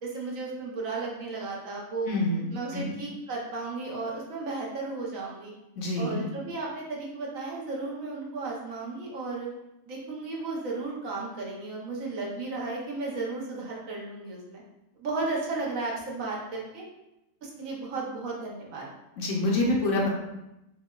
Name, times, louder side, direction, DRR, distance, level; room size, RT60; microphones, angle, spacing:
voice 1, 0.0-2.1 2.5-5.5 6.0-9.5 9.9-14.6 15.0-16.8 17.4-18.9, right 3 dB, 70° right, -3 dB, 1.1 m, -34 dB
voice 2, 2.0-3.0 5.8-6.2 19.2-20.1, left 2 dB, 65° left, -1 dB, 0.9 m, -27 dB
5.5 x 2.2 x 2.3 m, 0.92 s
omnidirectional pair, 1.5 m